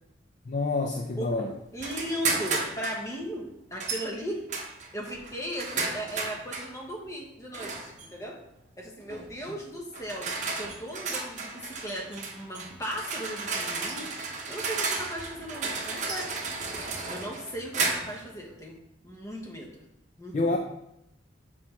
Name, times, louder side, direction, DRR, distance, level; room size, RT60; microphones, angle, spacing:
voice 1, 0.5-1.5 20.3-20.6, left 3 dB, 40° left, 2 dB, 0.4 m, -27 dB
voice 2, 1.7-4.4 4.9-8.4 8.8-16.3 17.1-18.8 19.0-19.7 20.2-20.6, equal, 15° left, -1 dB, 1.2 m, -37 dB
sound 1, 1.8-3.0 3.8-4.1 4.5-6.7 7.5-8.1 9.1-9.3 9.9-18.3, right 4 dB, 40° right, 0.9 m, -33 dB
6.0 x 4.4 x 4.5 m, 0.81 s
head